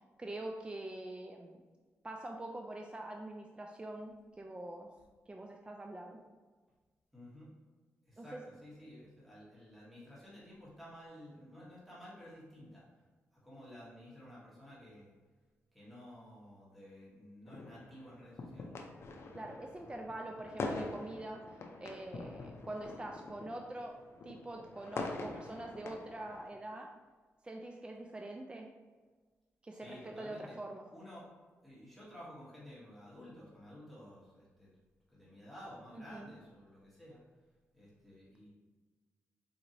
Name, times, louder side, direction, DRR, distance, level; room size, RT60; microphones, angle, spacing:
voice 1, 0.2-1.6 2.0-4.9 5.3-6.2 8.2-8.4 19.3-23.9 24.2-26.9 27.4-28.7 29.6-30.9 35.9-36.3, right 1 dB, 20° right, 2 dB, 0.3 m, -44 dB
voice 2, 7.1-7.5 8.1-8.3 8.6-12.8 13.4-15.1 15.7-18.7 29.7-30.6 30.9-31.2 31.6-34.7 35.1-37.2 37.7-38.5, equal, ahead, -8 dB, 1.5 m, -53 dB
sound 1, 17.5-26.5, left 3 dB, 60° left, 0.5 m, -44 dB
4.1 x 2.9 x 2.6 m, 1.4 s
cardioid pair, 70°, 5 cm